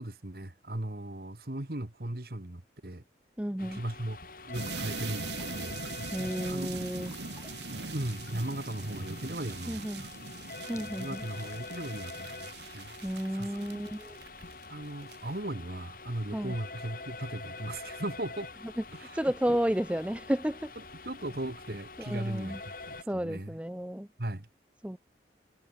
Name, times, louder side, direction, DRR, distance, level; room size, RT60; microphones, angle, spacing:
voice 1, 0.0-3.0 3.6-4.2 4.4-6.7 7.0-7.1 7.7-10.1 10.5-12.9 13.3-13.8 14.7-18.5 18.9-19.2 19.5-19.6 21.0-23.6 24.2-24.5, right 1 dB, 55° right, 1.8 m, -38 dB
voice 2, 3.4-3.8 6.1-7.1 9.7-10.1 10.7-11.2 13.0-14.2 16.3-16.5 19.0-20.7 22.0-22.6 23.0-24.1 24.8-25.0, equal, 5° right, 0.6 m, -32 dB
sound 1, 3.6-23.0, left 3 dB, 50° left, 2.7 m, -45 dB
sound 2, 4.4-12.8, left 4 dB, 15° left, 6.4 m, -59 dB
sound 3, 4.5-14.6 15.0-15.3, right 4 dB, 80° right, 2.1 m, -41 dB
head